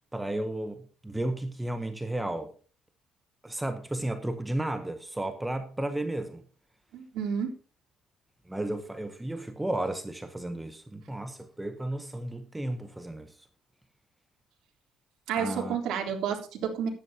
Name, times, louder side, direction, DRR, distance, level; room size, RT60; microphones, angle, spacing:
voice 1, 0.1-2.5 3.4-6.4 8.5-13.3 15.4-15.8, right 1 dB, 5° right, 0.9 m, -33 dB
voice 2, 6.9-7.5 15.3-16.9, right 7 dB, 75° right, 3.4 m, -30 dB
14.5 x 11.0 x 2.8 m
cardioid pair, 175°, 0 cm